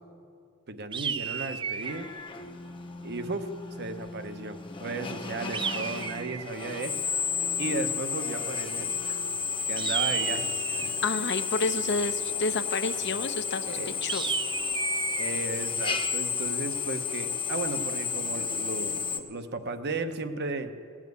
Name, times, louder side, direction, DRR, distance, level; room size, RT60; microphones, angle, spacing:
voice 1, 0.7-2.1 3.0-3.5 3.8-7.0 7.6-9.2 9.7-10.9 13.7-14.0 15.2-20.7, right 3 dB, 55° right, 8 dB, 0.8 m, -35 dB
sound 1, 0.9-2.1 5.5-6.6 9.8-11.0 14.1-15.3, right 6 dB, 25° right, 0.4 m, -32 dB
Drill, 1.8-19.2, left 6 dB, 25° left, 0.7 m, -32 dB
voice 2, 11.0-14.3, left 3 dB, 55° left, 9 dB, 0.7 m, -30 dB
16.5 x 7.4 x 9.4 m, 2.3 s
head